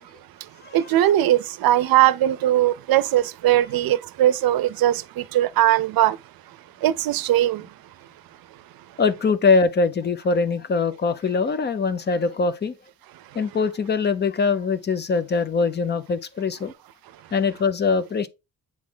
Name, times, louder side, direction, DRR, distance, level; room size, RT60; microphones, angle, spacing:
voice 1, 0.4-6.2 6.5-7.7, right 13 dB, 80° right, 0.6 m, -20 dB
voice 2, 9.0-12.7 13.3-16.7 17.3-18.3, left 4 dB, 30° left, 0.6 m, -22 dB
8.4 x 3.3 x 3.7 m
wide cardioid pair, 160°, 35 cm